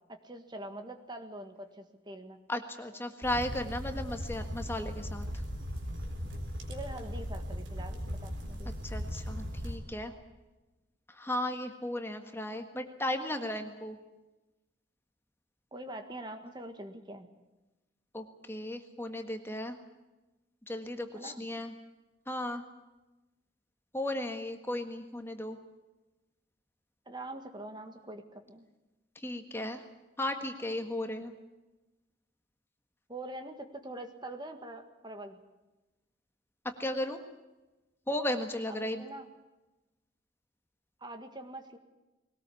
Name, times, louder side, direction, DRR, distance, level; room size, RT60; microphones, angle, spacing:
voice 1, 0.1-2.4 6.7-8.7 15.7-17.3 21.1-21.4 27.0-28.7 33.1-35.4 38.7-39.3 41.0-41.8, right 1 dB, 25° right, 7 dB, 1.7 m, -44 dB
voice 2, 2.5-5.4 8.8-10.1 11.1-14.0 18.1-19.8 20.7-21.7 22.3-22.6 23.9-25.6 29.1-29.8 30.2-31.3 36.8-37.2 38.1-39.0, left 1 dB, 15° left, 6 dB, 1.6 m, -35 dB
sound 1, 3.2-9.8, equal, 75° right, 4.0 m, -38 dB
21.0 x 18.5 x 8.5 m, 1.1 s
head